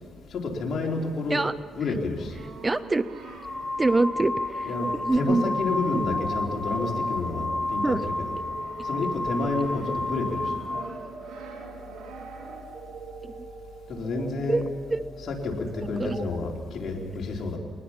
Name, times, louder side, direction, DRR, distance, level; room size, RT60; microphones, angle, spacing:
voice 1, 0.3-1.5 1.7-2.4 4.6-8.4 8.8-10.5 13.9-14.7 15.2-17.6, left 3 dB, 55° left, 0 dB, 3.8 m, -30 dB
Brass instrument, 2.1-12.9, right 4 dB, 80° right, 3.6 m, -46 dB
sound 1, 2.4-2.5 3.2-11.0, left 2 dB, 20° left, 1.3 m, -31 dB
voice 2, 2.6-3.0 3.8-4.7 5.0-5.5 7.8-8.0 13.2-13.3 14.5-14.6 14.9-15.0 16.0-16.2, right 2 dB, 20° right, 15 dB, 0.6 m, -24 dB
sound 2, 4.5-16.4, right 5 dB, 55° right, 1.4 m, -44 dB
22.5 x 19.5 x 5.9 m, 2.1 s
cardioid pair, 90°, 0 cm